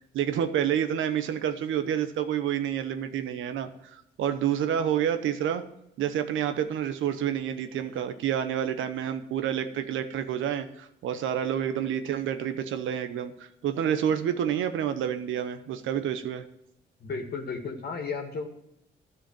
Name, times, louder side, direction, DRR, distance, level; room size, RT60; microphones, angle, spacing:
voice 1, 0.1-5.6 6.0-16.4, right 9 dB, 80° right, 9 dB, 1.0 m, -29 dB
voice 2, 17.0-18.5, left 4 dB, 55° left, 3 dB, 2.0 m, -33 dB
12.5 x 5.0 x 8.8 m, 0.81 s
cardioid pair, 90°, 20 cm